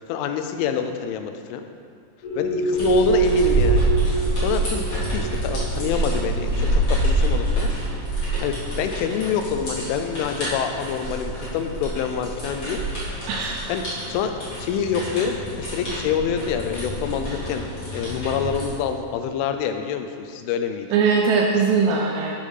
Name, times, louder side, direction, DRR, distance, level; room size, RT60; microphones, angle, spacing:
voice 1, 0.0-1.7 2.4-7.7 8.2-13.2 13.7-20.9, left 7 dB, 85° left, 7 dB, 3.0 m, -27 dB
sound 1, 2.2-8.4, right 5 dB, 55° left, 2.8 m, -27 dB
sound 2, 2.7-18.7, right 1 dB, 35° left, 2.3 m, -26 dB
voice 2, 13.3-13.7 20.9-22.3, right 5 dB, 85° right, 0 dB, 2.6 m, -20 dB
9.6 x 5.1 x 5.5 m, 2.3 s
omnidirectional pair, 5.6 m